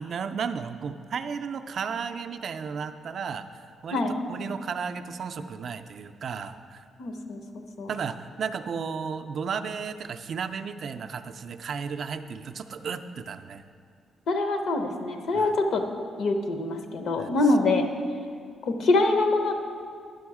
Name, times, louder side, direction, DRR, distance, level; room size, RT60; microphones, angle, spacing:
voice 1, 0.0-4.0 4.3-6.8 7.9-13.6 15.3-15.5 17.2-17.3, right 6 dB, 50° right, 8 dB, 0.4 m, -34 dB
voice 2, 7.0-7.4 7.8-7.9 14.3-15.9 16.2-17.9 18.6-19.5, left 2 dB, 70° left, 5 dB, 0.8 m, -24 dB
10.5 x 6.2 x 4.7 m, 2.2 s
cardioid pair, 145°, 0 cm